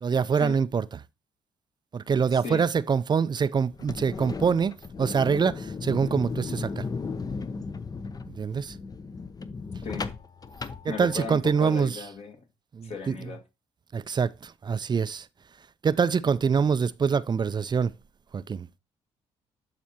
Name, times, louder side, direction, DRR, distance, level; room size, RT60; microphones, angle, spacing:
voice 1, 0.0-0.8 1.9-4.7 5.0-6.8 8.4-8.8 10.8-11.9 12.7-13.1 13.9-15.3 15.8-17.9 18.3-18.7, right 6 dB, 30° right, 0.4 m, -25 dB
voice 2, 2.3-2.6 9.8-10.1 10.9-12.4 12.8-13.4, left 4 dB, 50° left, 1.7 m, -36 dB
sound 1, 3.7-11.5, left 4 dB, 25° left, 0.6 m, -36 dB
11.5 x 4.2 x 2.8 m
hypercardioid pair, 55°, 14 cm